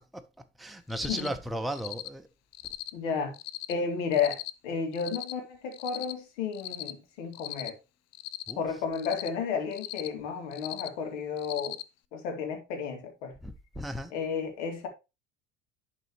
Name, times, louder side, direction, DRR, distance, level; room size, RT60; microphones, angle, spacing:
voice 1, 0.6-2.3 8.5-8.6 13.4-14.1, right 1 dB, ahead, 1.0 m, -35 dB
Cricket, 0.9-1.3 1.7-2.1 2.5-2.9 3.3-3.7 4.1-4.5 4.9-5.3 5.7-6.1 6.5-6.9 7.3-7.7 8.1-8.5 8.9-9.3 9.7-10.1 10.5-10.9 11.4-11.8, left 15 dB, 40° left, 0.7 m, -38 dB
voice 2, 2.9-3.4 3.7-4.4 4.6-7.7 8.6-11.8 12.1-13.3 14.1-14.9, left 6 dB, 70° left, 2.7 m, -32 dB
11.0 x 4.3 x 3.1 m
hypercardioid pair, 70°, 38 cm